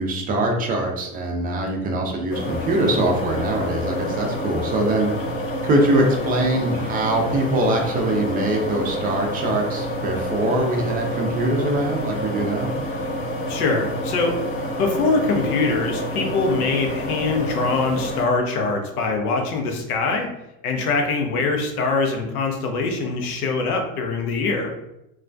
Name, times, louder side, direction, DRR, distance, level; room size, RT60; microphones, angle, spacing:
voice 1, 0.0-5.1 5.6-12.7, right 1 dB, 20° right, 1 dB, 0.4 m, -22 dB
sound 1, 2.3-18.3, equal, 35° left, 0.5 m, -28 dB
voice 2, 13.5-14.4 14.8-20.3 20.6-24.8, left 3 dB, 90° left, 3 dB, 0.7 m, -23 dB
2.3 x 2.1 x 2.5 m, 0.88 s
hypercardioid pair, 105°, 44 cm